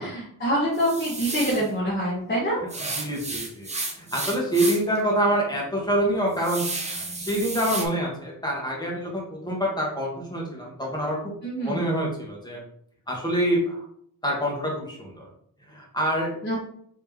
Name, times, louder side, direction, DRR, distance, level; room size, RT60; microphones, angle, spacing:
voice 1, 0.0-2.6 11.4-11.9 16.4-16.6, equal, 30° left, -7 dB, 1.2 m, -26 dB
sound 1, 0.7-1.7 2.7-5.0 5.4-5.5 6.0-7.9, right 3 dB, 20° right, 0.6 m, -32 dB
voice 2, 2.9-3.7 4.0-6.6 7.2-11.3 11.6-12.6 13.1-13.8 14.2-15.3 15.7-16.3, right 1 dB, 10° left, -3 dB, 1.1 m, -26 dB
3.5 x 3.0 x 3.5 m, 0.67 s
wide cardioid pair, 135°, 34 cm